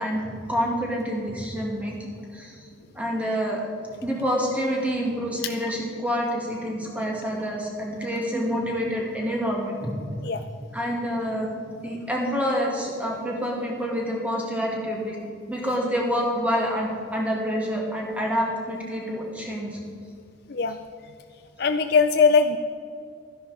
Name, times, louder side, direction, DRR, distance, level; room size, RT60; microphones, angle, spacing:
voice 1, 0.0-2.7 2.9-3.6 4.0-9.9 10.7-11.5 11.8-15.2 15.5-19.8, equal, 5° right, -2 dB, 2.3 m, -27 dB
voice 2, 21.6-22.6, left 5 dB, 55° left, 7 dB, 0.5 m, -20 dB
13.0 x 10.5 x 5.1 m, 2.5 s
head